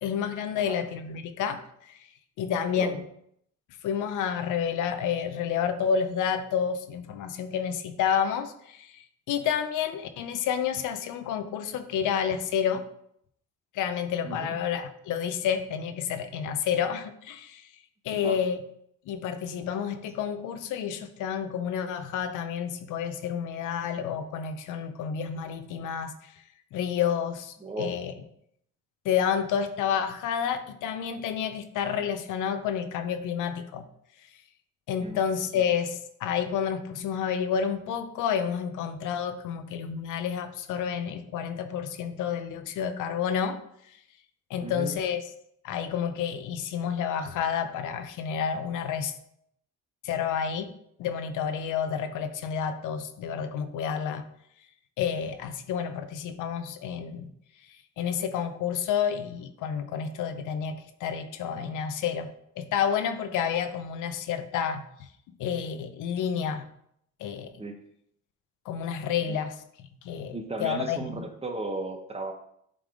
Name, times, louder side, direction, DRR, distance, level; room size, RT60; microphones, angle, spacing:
voice 1, 0.0-2.0 2.4-3.0 3.8-12.8 13.7-17.7 18.0-18.6 19.1-26.1 26.7-28.1 29.0-33.8 34.9-43.6 44.5-45.2 45.6-49.1 50.0-50.7 51.0-54.2 55.0-57.3 58.0-62.3 62.6-64.9 65.4-66.7 67.2-67.5 68.7-69.5 70.0-71.2, left 8 dB, 85° left, 9 dB, 0.7 m, -30 dB
voice 2, 14.2-14.6 18.1-18.4 27.6-28.0 35.0-35.2 35.5-35.6 44.6-45.0 67.6-67.7 69.3-69.4 70.3-72.3, right 2 dB, 20° right, 5 dB, 0.9 m, -35 dB
8.6 x 3.5 x 3.7 m, 0.72 s
cardioid pair, 90°, 30 cm